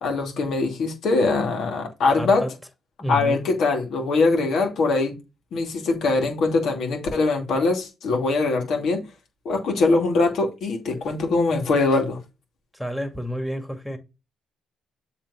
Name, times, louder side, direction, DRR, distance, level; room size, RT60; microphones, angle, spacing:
voice 1, 0.0-2.4 3.1-5.1 5.5-9.0 9.4-12.2, left 3 dB, 65° left, 2.5 m, -22 dB
voice 2, 2.1-2.5 3.0-3.4 12.7-14.0, equal, 10° left, 2.4 m, -29 dB
7.4 x 3.5 x 4.8 m
hypercardioid pair, 55°, 0 cm